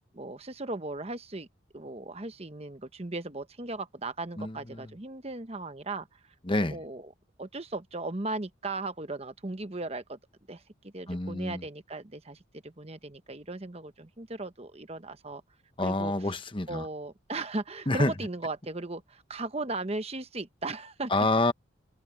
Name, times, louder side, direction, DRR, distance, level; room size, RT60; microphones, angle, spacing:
voice 1, 0.2-1.5 1.7-6.1 6.7-7.1 7.4-10.2 10.5-15.4 15.8-16.1 16.7-21.3, right 2 dB, 30° right, 1.0 m, -37 dB
voice 2, 4.4-4.9 6.4-6.8 11.1-11.6 15.8-16.9 17.9-18.1 21.1-21.5, left 2 dB, 25° left, 1.0 m, -27 dB
head